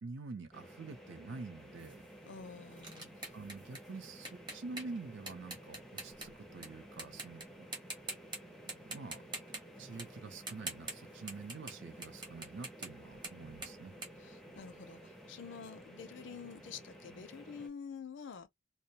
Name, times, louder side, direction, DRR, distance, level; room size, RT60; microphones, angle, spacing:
voice 1, 0.0-2.0 3.3-7.7 8.8-9.2 9.8-13.9, right 3 dB, 60° right, 0.5 m, -47 dB
sound 1, 0.5-17.7, equal, ahead, 0.4 m, -53 dB
sound 2, 1.8-6.7 7.0-7.4 7.7-8.4 8.7-11.8 12.0-15.0, right 2 dB, 20° right, 0.8 m, -45 dB
voice 2, 2.3-3.1 14.2-18.5, left 6 dB, 60° left, 0.4 m, -48 dB
2.2 x 2.0 x 2.7 m
head